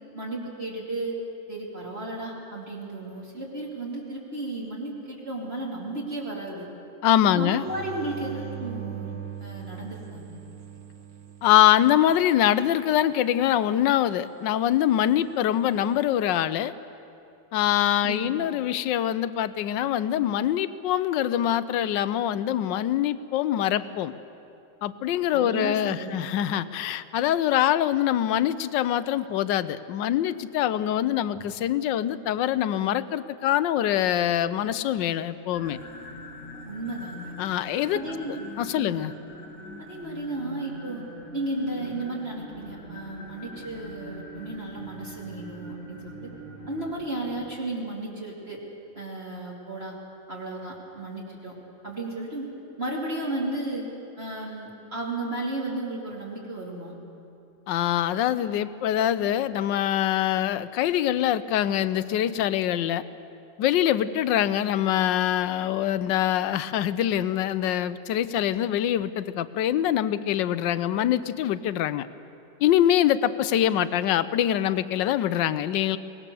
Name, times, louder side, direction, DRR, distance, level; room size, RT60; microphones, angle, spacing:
voice 1, 0.1-1.2 1.5-6.7 7.3-10.4 18.0-18.5 25.3-26.3 36.6-37.4 37.9-38.3 38.8-39.0 39.9-41.0 41.3-46.3 46.7-48.6 48.9-49.9 50.3-51.5 51.8-52.5 52.8-53.9 54.2-56.9, right 2 dB, 35° right, -4 dB, 3.0 m, -34 dB
voice 2, 7.0-7.7 11.4-16.7 17.5-24.1 24.8-35.8 37.4-38.0 38.6-39.1 57.7-63.0 63.6-72.1 72.6-76.0, left 11 dB, 85° left, 15 dB, 1.3 m, -24 dB
sound 1, 7.6-12.2 15.5-16.1, right 9 dB, 85° right, 2.0 m, -40 dB
sound 2, 35.5-47.5, equal, 10° left, 2.6 m, -42 dB
23.0 x 19.5 x 6.9 m, 2.8 s
omnidirectional pair, 2.0 m